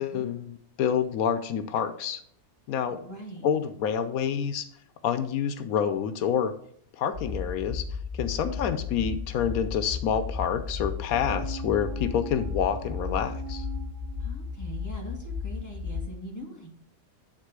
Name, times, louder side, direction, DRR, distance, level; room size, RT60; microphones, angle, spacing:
voice 1, 0.0-2.2 2.7-3.0 3.4-4.6 5.0-6.5 7.0-7.8 8.2-13.6, left 8 dB, 90° left, 10 dB, 1.1 m, -28 dB
voice 2, 2.9-3.5 14.2-16.8, right 1 dB, 10° left, -1 dB, 1.8 m, -42 dB
sound 1, 7.1-16.0, left 5 dB, 35° right, 1.4 m, -34 dB
sound 2, 11.1-14.8 15.2-15.3, right 8 dB, 65° right, 0.5 m, -42 dB
9.2 x 3.7 x 4.7 m, 0.66 s
omnidirectional pair, 1.5 m